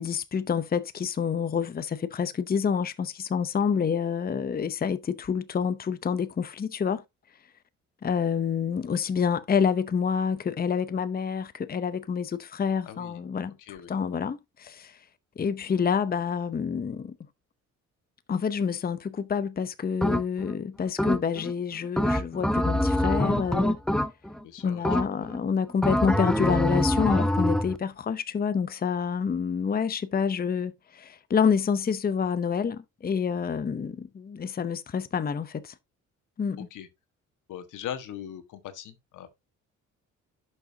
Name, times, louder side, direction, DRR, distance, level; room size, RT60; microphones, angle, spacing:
voice 1, 0.0-7.0 8.0-13.5 13.9-15.0 15.4-17.1 18.3-23.8 24.6-35.7 36.4-36.7, left 6 dB, 30° left, 0.8 m, -28 dB
voice 2, 12.8-13.2 13.6-14.0 24.4-24.9 25.2-25.3 36.7-36.9 37.5-39.3, left 10 dB, 85° left, 1.6 m, -40 dB
sound 1, 20.0-20.5 21.0-21.5 22.0-24.4 24.8-25.4 25.8-27.8, left 1 dB, ahead, 0.9 m, -25 dB
11.0 x 6.5 x 2.8 m
cardioid pair, 90°, 30 cm